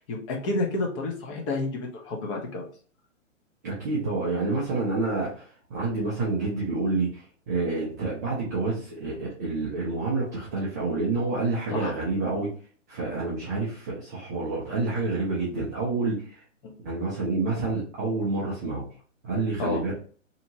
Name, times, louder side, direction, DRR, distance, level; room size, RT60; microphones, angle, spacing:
voice 1, 0.0-2.7 11.7-11.9 16.6-16.7 19.6-19.8, left 2 dB, 25° left, 0 dB, 0.6 m, -30 dB
voice 2, 3.6-12.5 12.9-16.4 16.8-18.8 19.2-19.9, right 3 dB, 15° right, -7 dB, 0.4 m, -28 dB
2.8 x 2.7 x 2.7 m, 0.42 s
hypercardioid pair, 135°, 39 cm